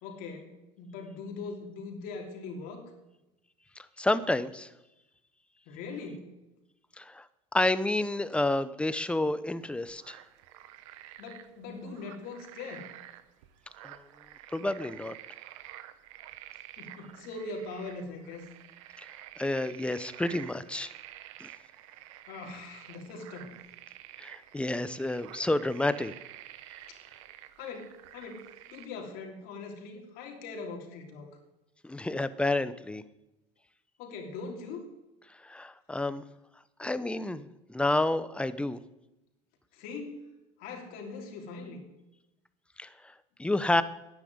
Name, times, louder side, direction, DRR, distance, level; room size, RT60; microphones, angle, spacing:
voice 1, 0.0-2.9 5.7-6.3 11.2-12.9 16.8-18.4 22.3-23.5 26.9-27.3 27.6-28.5 28.7-31.4 34.0-34.8 39.7-40.3 40.6-41.8, left 4 dB, 65° left, 2 dB, 3.1 m, -41 dB
voice 2, 3.8-4.7 7.0-7.3 7.5-10.2 13.8-14.0 14.5-15.1 19.0-19.1 19.4-20.9 21.4-21.5 24.2-26.1 31.8-33.0 35.4-36.3 36.8-38.8 42.8-42.9 43.4-43.8, left 2 dB, 5° left, 14 dB, 0.7 m, -29 dB
sound 1, 9.6-28.9, right 14 dB, 90° right, 1.0 m, -50 dB
10.5 x 10.0 x 9.5 m, 0.96 s
supercardioid pair, 120°, 16 cm